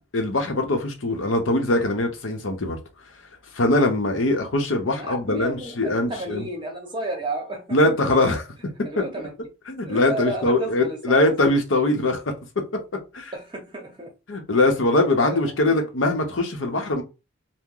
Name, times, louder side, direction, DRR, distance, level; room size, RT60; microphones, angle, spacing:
voice 1, 0.1-2.8 3.5-6.5 7.7-8.4 9.0-9.1 9.7-12.2 12.7-12.8 13.1-13.3 14.3-17.0, left 2 dB, 85° left, 0.8 m, -22 dB
voice 2, 4.9-8.0 8.8-9.4 9.8-11.2 13.3-14.1 15.2-15.8, right 2 dB, 25° right, 0.7 m, -33 dB
2.9 x 2.1 x 3.7 m
head